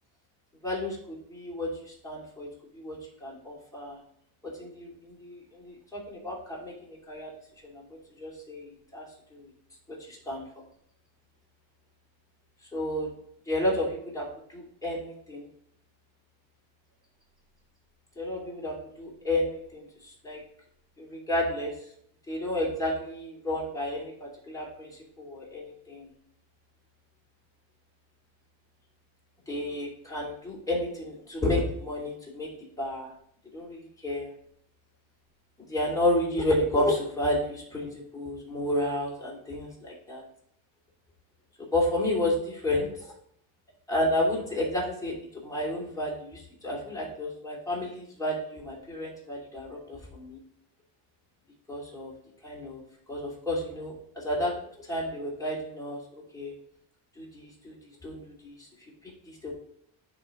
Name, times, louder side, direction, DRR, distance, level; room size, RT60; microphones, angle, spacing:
voice 1, 0.6-2.5 2.7-4.0 4.4-7.3 7.6-9.0 9.3-9.5 9.9-10.4 12.7-13.1 13.5-15.4 18.2-20.4 21.0-21.9 22.3-26.1 29.5-32.5 32.8-33.1 33.5-34.3 35.7-40.2 41.6-43.1 43.9-50.4 51.7-52.1 52.4-52.8 53.1-54.5 54.8-56.0 56.3-56.5 57.2-58.7 59.0-59.5, left 1 dB, 5° left, -5 dB, 2.8 m, -31 dB
10.0 x 3.5 x 3.7 m, 0.69 s
cardioid pair, 95°, 47 cm